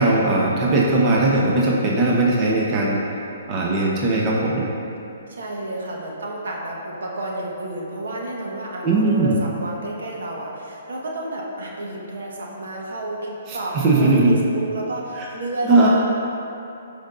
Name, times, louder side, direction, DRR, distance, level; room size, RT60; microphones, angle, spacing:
voice 1, 0.0-3.0 3.5-4.7 8.8-9.3 13.5-14.4 15.2-15.3 15.6-15.9, right 2 dB, 30° right, -3 dB, 1.0 m, -19 dB
voice 2, 5.3-16.0, right 2 dB, 70° right, -3 dB, 1.6 m, -31 dB
14.5 x 5.2 x 2.7 m, 2.7 s
hypercardioid pair, 135°, 0 cm